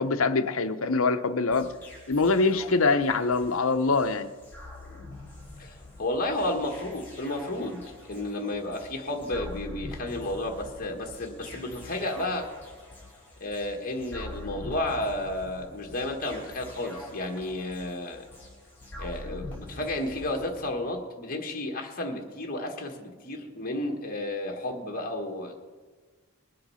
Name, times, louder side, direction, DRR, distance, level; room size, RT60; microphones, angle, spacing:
voice 1, 0.0-1.7 2.1-4.3, left 3 dB, 65° left, 10 dB, 0.8 m, -24 dB
sound 1, 1.5-20.7, left 2 dB, 10° left, 4.2 m, -44 dB
voice 2, 5.6-7.8 8.1-12.5 13.4-18.2 19.0-25.7, left 1 dB, 40° left, 2 dB, 1.4 m, -32 dB
21.0 x 7.8 x 5.6 m, 1.4 s
head